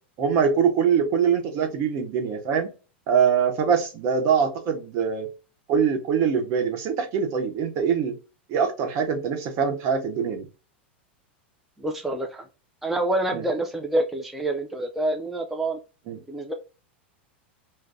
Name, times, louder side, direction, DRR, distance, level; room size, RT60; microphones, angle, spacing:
voice 1, 0.2-2.7 3.1-5.3 5.7-8.1 8.5-10.5 13.3-13.4 16.1-16.2, right 7 dB, 50° right, 1.0 m, -23 dB
voice 2, 11.8-12.4 12.8-15.8 16.3-16.5, right 1 dB, 5° right, 0.4 m, -27 dB
2.6 x 2.2 x 3.5 m
hypercardioid pair, 105°, 6 cm